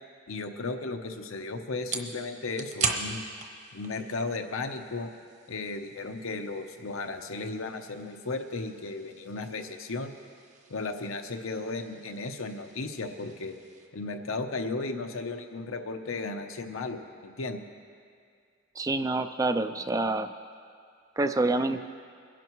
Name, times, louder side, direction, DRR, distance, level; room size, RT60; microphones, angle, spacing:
voice 1, 0.3-3.2 3.7-5.1 5.5-10.1 10.7-13.6 13.9-17.6, left 3 dB, 85° left, 5 dB, 0.9 m, -35 dB
sound 1, 0.7-13.9, right 4 dB, 35° right, 1.0 m, -41 dB
voice 2, 18.8-20.3 21.2-21.8, right 2 dB, 15° right, 9 dB, 0.3 m, -27 dB
22.5 x 11.0 x 3.1 m, 2.2 s
head